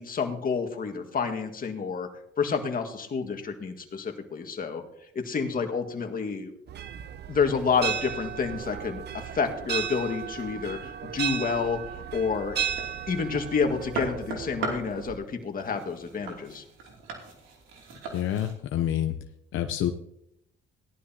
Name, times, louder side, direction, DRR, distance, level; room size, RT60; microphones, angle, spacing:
voice 1, 0.0-2.1 2.4-4.8 5.1-6.5 7.3-12.6 13.1-16.6, left 5 dB, 45° left, 4 dB, 1.9 m, -29 dB
sound 1, 6.7-15.2, right 9 dB, 55° right, 0.7 m, -35 dB
sound 2, 12.1-18.5, right 3 dB, 90° right, 2.9 m, -39 dB
voice 2, 18.1-19.1 19.5-19.9, left 11 dB, 85° left, 7 dB, 0.8 m, -27 dB
17.5 x 11.5 x 2.9 m, 0.75 s
cardioid pair, 90°, 20 cm